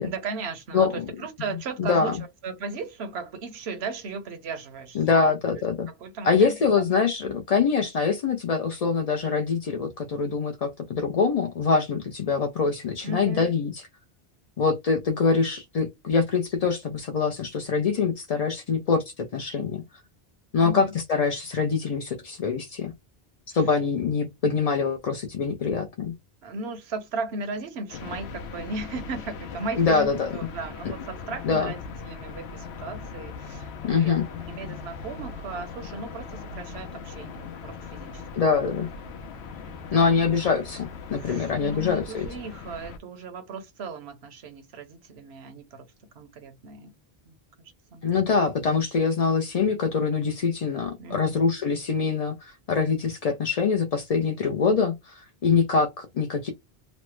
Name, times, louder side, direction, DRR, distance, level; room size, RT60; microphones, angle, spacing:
voice 1, 0.0-2.2 2.4-6.9 13.0-13.5 20.6-20.9 26.4-34.2 34.5-38.2 39.6-40.1 40.4-40.5 41.2-45.8 46.1-46.9 47.3-48.1 51.0-51.4, right 3 dB, 75° right, 1.0 m, -36 dB
voice 2, 0.7-1.1 1.8-2.2 5.0-5.9 6.2-13.9 14.6-19.8 20.5-22.9 23.5-26.1 29.8-30.4 31.4-31.7 33.8-34.3 38.3-38.9 39.9-42.3 48.0-56.5, left 5 dB, 55° left, 0.4 m, -24 dB
sound 1, 27.9-43.0, left 5 dB, 85° left, 0.9 m, -39 dB
3.1 x 2.0 x 3.0 m
omnidirectional pair, 1.1 m